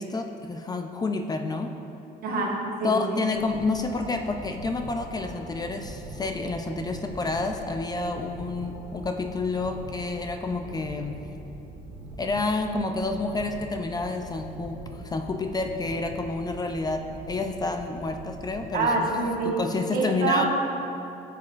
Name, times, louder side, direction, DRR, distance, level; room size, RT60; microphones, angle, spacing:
voice 1, 0.0-1.7 2.8-11.2 12.2-19.1 19.4-20.4, left 3 dB, 25° left, 5 dB, 0.4 m, -29 dB
voice 2, 2.2-3.2 18.7-19.5 19.9-20.5, right 3 dB, 60° right, -1 dB, 1.4 m, -26 dB
sound 1, 3.2-19.2, right 2 dB, 85° right, 1.1 m, -42 dB
12.0 x 6.7 x 2.5 m, 2.9 s
cardioid pair, 110°, 17 cm